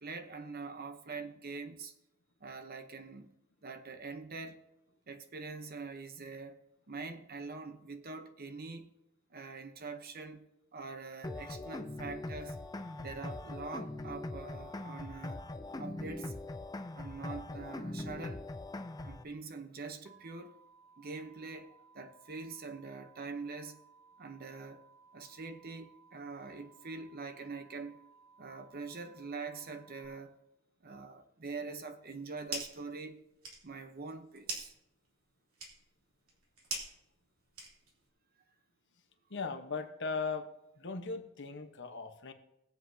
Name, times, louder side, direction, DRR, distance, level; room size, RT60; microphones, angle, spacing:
voice 1, 0.0-1.9 2.4-3.3 3.6-4.6 5.1-6.6 6.9-8.9 9.3-10.5 10.7-12.6 13.0-15.4 15.8-16.4 16.9-18.4 19.0-20.6 21.0-23.8 24.2-24.8 25.1-28.0 28.4-30.4 30.8-33.2 33.6-34.7, right 4 dB, 45° right, 0.9 m, -44 dB
sound 1, 11.2-19.2, left 2 dB, 15° left, 0.5 m, -42 dB
sound 2, 20.1-30.1, right 5 dB, ahead, 1.6 m, -62 dB
sound 3, 32.0-32.9 33.2-38.1, right 2 dB, 85° right, 3.0 m, -44 dB
voice 2, 39.3-40.5 40.8-42.3, left 4 dB, 55° left, 1.1 m, -38 dB
19.0 x 7.9 x 2.8 m
head